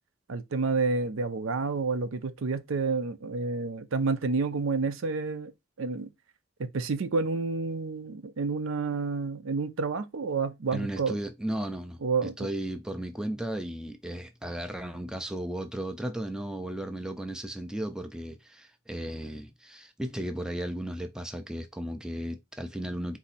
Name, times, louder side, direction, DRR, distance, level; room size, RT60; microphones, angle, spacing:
voice 1, 0.3-5.5 5.8-6.1 6.6-11.2 12.0-12.5, right 4 dB, 75° right, 0.5 m, -29 dB
voice 2, 10.7-23.2, right 1 dB, 5° right, 0.4 m, -35 dB
4.1 x 2.7 x 4.1 m
head